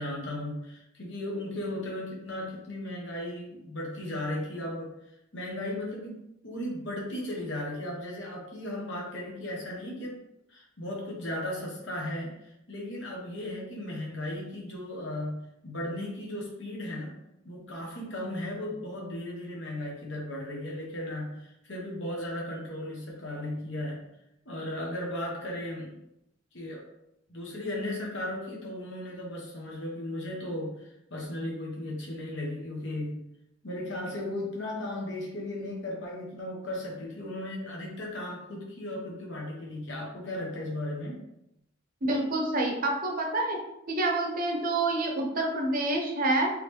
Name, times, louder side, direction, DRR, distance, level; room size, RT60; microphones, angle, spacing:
voice 1, 0.0-4.9 5.3-10.2 10.5-17.2 17.4-24.0 24.4-26.0 26.5-26.9 27.3-33.2 33.6-41.2, left 1 dB, 60° left, -2 dB, 1.2 m, -36 dB
voice 2, 42.0-43.6 43.9-46.5, right 2 dB, 45° right, 1 dB, 0.8 m, -27 dB
3.8 x 3.2 x 3.3 m, 0.84 s
head